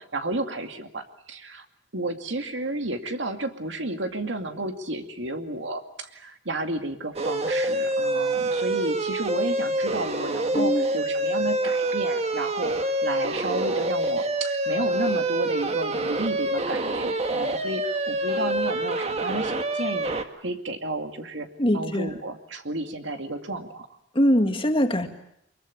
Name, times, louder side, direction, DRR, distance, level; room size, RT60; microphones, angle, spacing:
voice 1, 0.0-1.6 1.9-20.1 20.4-21.5 21.7-23.9, right 2 dB, 85° right, 6 dB, 2.4 m, -32 dB
sound 1, 7.2-20.2, right 1 dB, 35° right, 1.6 m, -26 dB
voice 2, 10.5-10.9 21.6-22.1 24.2-25.1, equal, 30° left, 6 dB, 2.1 m, -22 dB
24.0 x 22.5 x 8.6 m, 0.74 s
head